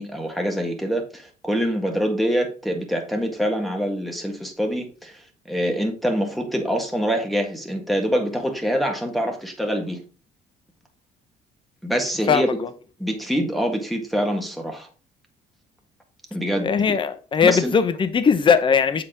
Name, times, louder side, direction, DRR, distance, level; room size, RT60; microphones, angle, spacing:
voice 1, 0.0-5.2 5.5-10.0 11.8-12.5 13.0-14.9 16.3-17.0 17.4-17.7, equal, ahead, 1.7 m, -25 dB
voice 2, 12.3-12.7 16.6-19.0, left 6 dB, 30° left, 0.7 m, -19 dB
7.4 x 4.2 x 3.7 m
cardioid pair, 110°, 17 cm